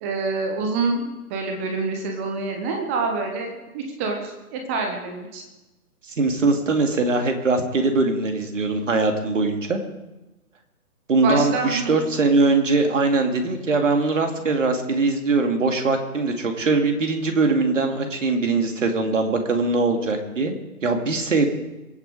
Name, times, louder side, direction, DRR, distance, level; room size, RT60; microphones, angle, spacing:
voice 1, 0.0-5.4 11.2-11.9, right 3 dB, 10° right, 3 dB, 0.7 m, -27 dB
voice 2, 6.1-9.8 11.1-20.5 20.8-21.5, right 3 dB, 55° right, 4 dB, 2.6 m, -21 dB
23.0 x 8.6 x 4.9 m, 1.0 s
figure-of-eight pair, 135°, 44 cm